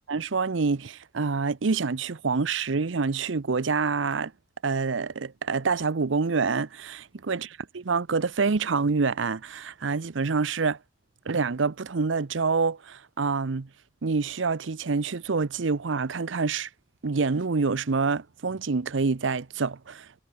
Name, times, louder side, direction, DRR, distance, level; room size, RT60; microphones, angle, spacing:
voice 1, 0.1-4.3 4.6-7.5 7.7-10.8 11.3-13.7 14.0-16.7 17.0-20.2, right 4 dB, 85° right, 0.7 m, -27 dB
head